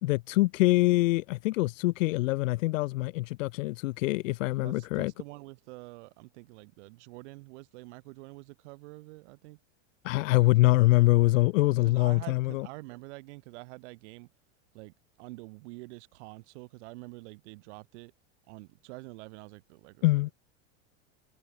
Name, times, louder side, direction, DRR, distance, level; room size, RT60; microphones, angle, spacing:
voice 1, 0.0-5.1 10.0-12.7 20.0-20.3, left 20 dB, 85° left, 0.8 m, -24 dB
voice 2, 4.6-9.6 11.8-14.3 14.7-18.1 18.5-20.3, right 24 dB, 65° right, 5.1 m, -47 dB
supercardioid pair, 155°, 38 cm